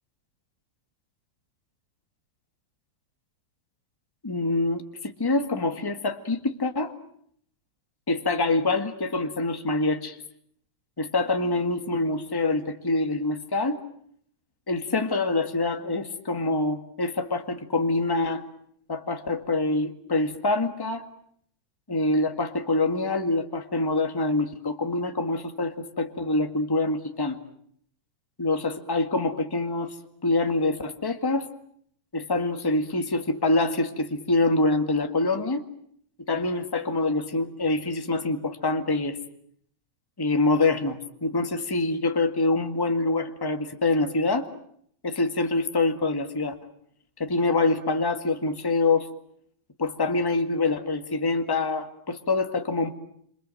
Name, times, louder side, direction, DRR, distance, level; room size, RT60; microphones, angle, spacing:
voice 1, 4.2-6.9 8.1-10.2 11.0-13.8 14.7-18.4 18.9-21.0 21.9-27.4 28.4-29.9 30.2-31.5 32.1-35.6 36.3-39.2 40.2-44.5 45.0-46.6 47.2-49.1 49.8-52.9, left 2 dB, 10° left, 7 dB, 1.2 m, -25 dB
28.0 x 27.0 x 7.8 m, 0.67 s
omnidirectional pair, 3.3 m